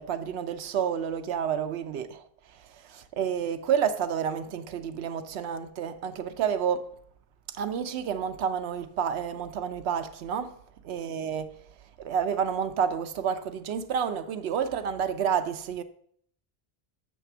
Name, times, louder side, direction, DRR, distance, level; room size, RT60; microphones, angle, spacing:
voice 1, 0.0-2.2 2.9-6.9 7.5-10.6 10.8-11.5 12.0-15.8, right 7 dB, 80° right, 0.9 m, -29 dB
8.3 x 3.3 x 5.9 m
omnidirectional pair, 1.1 m